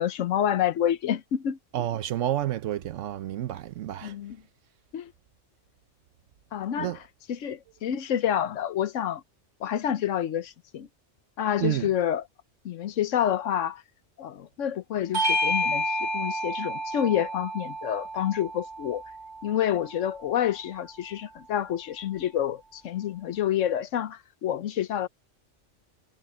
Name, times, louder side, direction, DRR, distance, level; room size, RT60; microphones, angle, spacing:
voice 1, 0.0-1.6 4.0-4.4 4.9-5.1 6.5-6.9 7.3-9.2 9.6-10.9 11.4-12.2 12.6-13.8 14.2-19.0 19.4-25.1, left 10 dB, 85° left, 1.1 m, -28 dB
voice 2, 1.7-4.1 6.8-7.0 11.6-11.9, right 12 dB, 80° right, 1.0 m, -29 dB
Bell / Doorbell, 15.1-20.0, left 1 dB, 35° right, 2.5 m, -30 dB
omnidirectional pair, 1.3 m